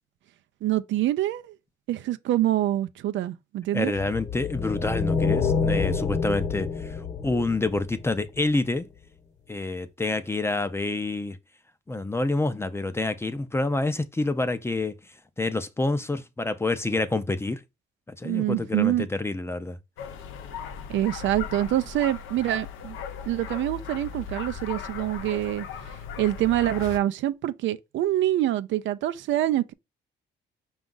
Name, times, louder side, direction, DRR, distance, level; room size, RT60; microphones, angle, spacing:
voice 1, 0.6-1.5 1.9-3.9 18.2-19.1 20.9-23.0 23.3-25.7 26.2-29.7, right 13 dB, 70° right, 0.4 m, -25 dB
voice 2, 3.7-7.0 7.2-8.9 9.5-11.4 11.9-15.0 15.4-17.6 18.2-19.8, left 2 dB, 15° left, 0.5 m, -27 dB
sound 1, 3.9-8.4, left 5 dB, 35° left, 1.0 m, -27 dB
sound 2, 20.0-27.0, left 7 dB, 90° left, 0.6 m, -38 dB
5.1 x 2.4 x 3.8 m
cardioid pair, 90°, 20 cm